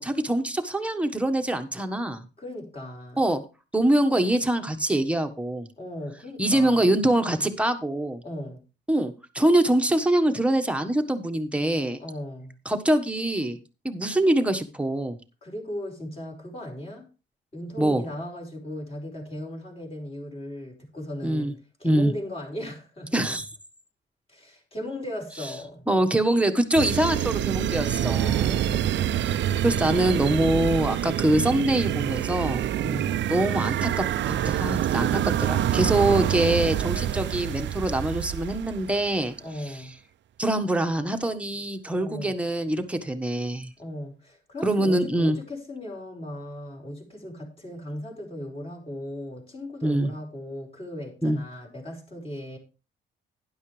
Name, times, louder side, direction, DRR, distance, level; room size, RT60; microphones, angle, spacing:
voice 1, 0.0-2.2 3.2-3.4 3.7-5.7 6.4-8.2 8.9-12.0 12.6-13.6 13.8-15.2 17.8-18.0 21.2-21.5 21.8-22.1 23.1-23.4 25.9-28.6 29.2-29.4 29.6-32.6 33.3-39.3 40.4-43.7 44.6-45.4 49.8-50.1 51.2-51.4, right 1 dB, 5° right, 1.4 m, -24 dB
voice 2, 2.4-3.2 5.8-6.9 8.2-8.6 12.0-12.5 15.4-17.1 17.5-21.5 21.8-23.2 24.3-25.8 27.9-29.5 32.8-33.1 39.4-39.9 42.0-42.3 43.8-52.6, left 1 dB, 30° left, 5.1 m, -37 dB
sound 1, 26.8-39.1, right 11 dB, 65° right, 0.6 m, -26 dB
12.0 x 10.5 x 3.3 m
cardioid pair, 90°, 20 cm